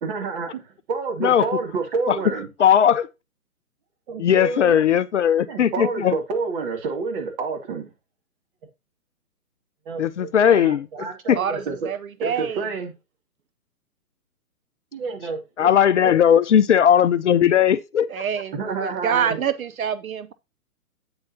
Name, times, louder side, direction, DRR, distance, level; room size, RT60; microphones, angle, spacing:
voice 1, 0.0-2.5 4.1-5.0 5.5-7.9 9.9-11.9 12.2-12.9 14.9-15.7 16.0-16.1 18.5-19.4, right 4 dB, 35° right, 2.5 m, -29 dB
voice 2, 2.6-3.1 4.2-6.1 10.0-10.9 11.3-11.4 15.6-18.2, left 9 dB, 55° left, 0.6 m, -18 dB
voice 3, 11.4-12.6 18.1-20.3, right 8 dB, 65° right, 0.8 m, -26 dB
8.8 x 8.0 x 2.8 m
figure-of-eight pair, 135°, 45 cm